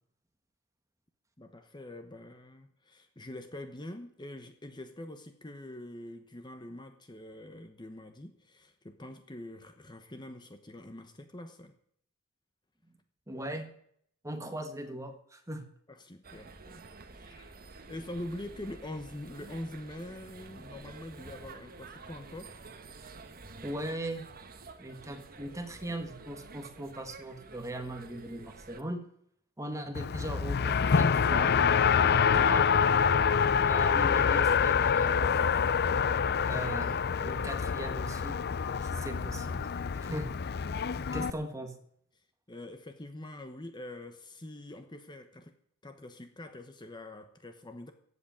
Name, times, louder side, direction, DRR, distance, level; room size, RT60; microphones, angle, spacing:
voice 1, 1.4-11.7 15.9-16.8 17.1-17.6 17.9-22.6 41.0-41.5 42.5-45.5 45.8-47.9, left 1 dB, 20° left, 8 dB, 1.0 m, -44 dB
voice 2, 13.3-13.7 14.2-15.7 23.6-24.3 24.8-29.0 29.6-31.5 32.0-32.7 33.6-35.2 36.4-38.4 38.8-39.7 39.9-40.3 41.1-41.7, right 1 dB, 15° right, 6 dB, 1.6 m, -39 dB
sound 1, 16.2-28.8, right 3 dB, 40° right, 1.3 m, -50 dB
Race car auto racing, 29.9-41.3, left 6 dB, 45° left, 0.5 m, -26 dB
15.0 x 8.2 x 8.8 m, 0.69 s
head